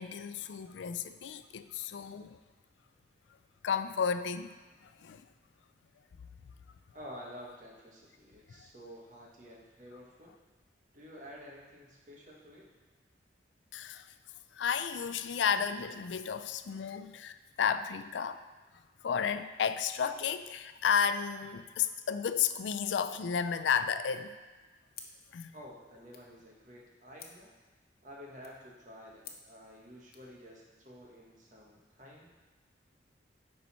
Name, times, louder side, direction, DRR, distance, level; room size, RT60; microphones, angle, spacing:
voice 1, 0.0-2.4 3.6-4.5 4.8-5.3 8.5-8.7 13.7-14.1 14.5-18.4 19.0-24.4 25.3-25.5, left 7 dB, 85° left, 11 dB, 0.4 m, -32 dB
voice 2, 6.9-10.4 10.9-12.7 25.5-27.5 28.0-32.3, equal, 45° right, -3 dB, 1.6 m, -50 dB
sound 1, 24.9-30.3, left 7 dB, 55° left, 0.8 m, -55 dB
10.5 x 4.2 x 4.3 m, 1.3 s
head